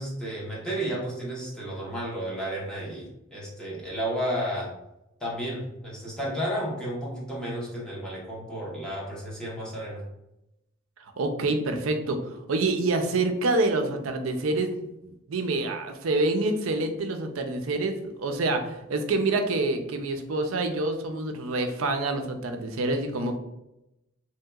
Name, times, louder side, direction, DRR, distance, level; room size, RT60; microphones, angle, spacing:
voice 1, 0.0-4.7 5.2-10.0, equal, 5° left, -6 dB, 1.0 m, -32 dB
voice 2, 11.0-14.7 15.0-23.4, right 2 dB, 85° right, 6 dB, 0.5 m, -27 dB
3.2 x 2.8 x 2.3 m, 0.88 s
head